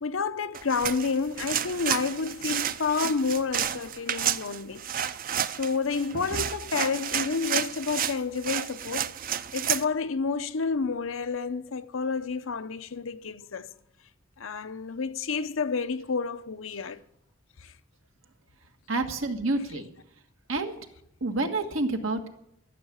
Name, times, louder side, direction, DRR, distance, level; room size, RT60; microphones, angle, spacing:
voice 1, 0.0-4.9 5.6-9.1 9.5-13.7 14.4-17.0 17.6-17.7 19.7-19.8, left 5 dB, 85° left, 0.7 m, -30 dB
sound 1, 0.5-9.9, right 9 dB, 45° right, 0.5 m, -31 dB
voice 2, 18.9-19.9 20.5-20.7 21.2-22.3, right 2 dB, 85° right, 1.6 m, -28 dB
14.0 x 7.3 x 9.9 m
head